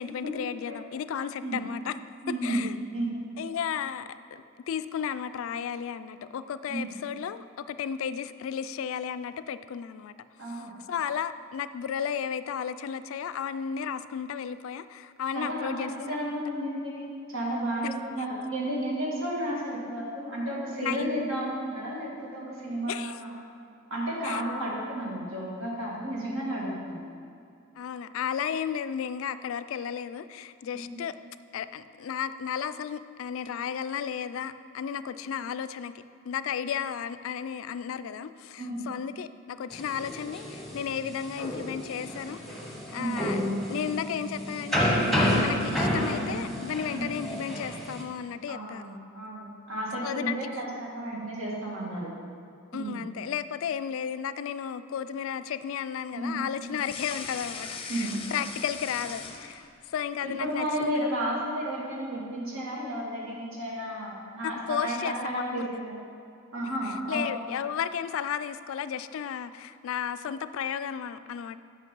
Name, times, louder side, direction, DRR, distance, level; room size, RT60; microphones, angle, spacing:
voice 1, 0.0-2.8 3.4-10.1 10.5-16.2 17.8-17.9 20.8-21.3 22.9-23.2 24.2-24.4 27.8-31.2 31.5-35.9 36.3-42.4 42.9-43.4 43.7-49.0 50.0-50.4 52.7-61.1 64.4-65.8 67.1-71.6, left 8 dB, 65° left, 13 dB, 0.3 m, -34 dB
voice 2, 2.2-2.6 2.9-3.1 6.7-6.9 10.4-10.7 15.3-15.7 16.1-23.3 23.9-27.1 30.7-31.0 38.6-38.9 42.9-43.2 46.9-47.1 48.5-52.1 52.7-53.0 56.1-56.5 56.7-56.8 57.9-58.2 60.2-66.0 66.5-67.3, right 1 dB, 70° right, -4 dB, 2.2 m, -32 dB
sound 1, 39.7-48.0, equal, ahead, 1.1 m, -30 dB
sound 2, 56.7-59.9 60.3-61.0, left 5 dB, 25° left, 0.6 m, -40 dB
8.3 x 5.9 x 5.4 m, 2.5 s
head